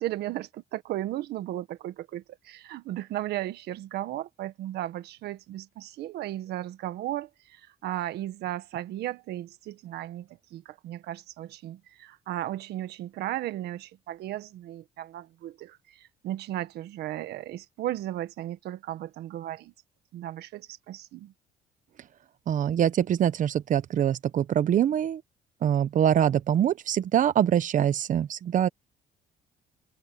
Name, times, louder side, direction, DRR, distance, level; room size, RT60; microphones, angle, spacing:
voice 1, 0.0-19.7 20.1-21.3, right 14 dB, 75° right, 1.6 m, -35 dB
voice 2, 22.5-25.2 25.6-28.7, right 10 dB, 50° right, 0.9 m, -24 dB
cardioid pair, 110°, 17 cm